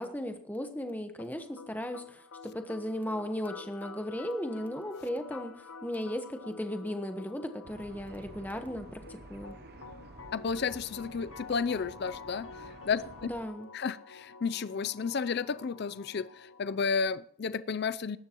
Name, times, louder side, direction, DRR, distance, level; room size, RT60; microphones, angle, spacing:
voice 1, 0.0-9.0 9.3-9.6 13.2-13.7, left 1 dB, 10° left, 1.1 m, -36 dB
sound 1, 1.2-17.2, left 4 dB, 75° left, 1.1 m, -49 dB
sound 2, 7.6-13.5, right 2 dB, 45° right, 0.8 m, -51 dB
voice 2, 10.3-12.5 12.8-13.3 13.7-18.2, left 5 dB, 50° left, 0.4 m, -32 dB
20.5 x 11.5 x 3.0 m
head